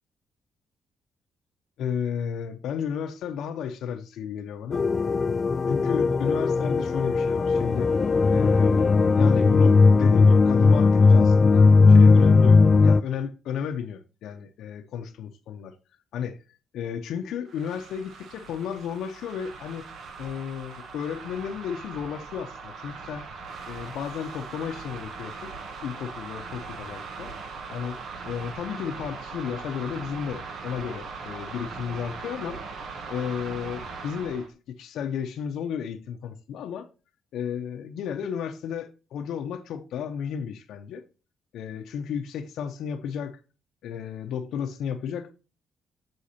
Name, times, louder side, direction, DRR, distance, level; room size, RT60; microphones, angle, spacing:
voice 1, 1.8-4.8 5.7-7.9 8.3-15.7 16.1-16.4 16.7-19.9 20.2-23.2 23.7-25.5 25.8-27.3 27.7-28.0 28.2-32.6 33.1-36.9 37.3-41.0 41.5-43.4 43.8-45.3, left 8 dB, 80° left, 0.7 m, -33 dB
sound 1, 4.7-13.0, left 4 dB, 35° left, 0.3 m, -18 dB
sound 2, 17.5-34.5, right 4 dB, 70° right, 1.2 m, -40 dB
6.4 x 6.3 x 2.8 m
cardioid pair, 90°, 0 cm